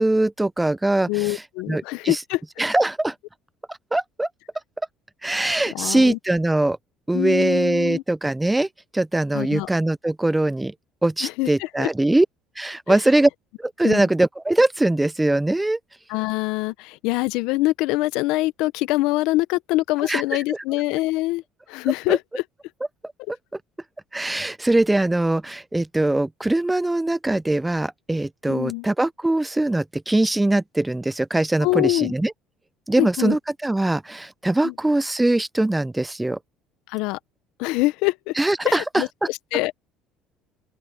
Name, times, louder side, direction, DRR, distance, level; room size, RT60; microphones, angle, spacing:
voice 1, 0.0-1.4 1.7-2.2 2.6-3.1 3.7-4.3 5.2-6.8 7.1-8.7 8.9-10.7 11.0-12.3 12.6-13.3 13.6-15.8 20.0-20.2 22.1-22.2 24.1-32.3 32.9-36.4 38.4-39.0, right 2 dB, 10° right, 0.6 m, -22 dB
voice 2, 1.1-2.4 5.7-6.2 7.1-8.0 9.3-9.7 11.2-11.9 13.8-14.1 16.1-21.4 21.7-22.4 28.5-28.9 31.6-32.1 33.0-33.4 34.6-34.7 36.9-37.2 37.6-38.3 38.6-39.7, left 20 dB, 75° left, 0.9 m, -24 dB
open air
supercardioid pair, 85°, 0 cm